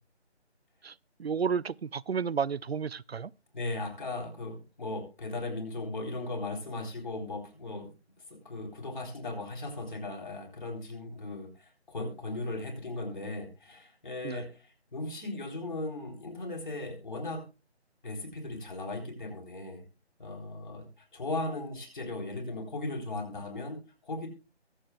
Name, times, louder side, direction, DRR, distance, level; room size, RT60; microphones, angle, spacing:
voice 1, 1.2-3.3 14.2-14.4, right 6 dB, 65° right, 0.5 m, -31 dB
voice 2, 3.5-7.9 8.3-17.4 18.0-19.8 20.2-20.9 21.1-24.3, left 2 dB, 45° left, 4.2 m, -37 dB
22.5 x 7.6 x 2.3 m
figure-of-eight pair, 165°, 34 cm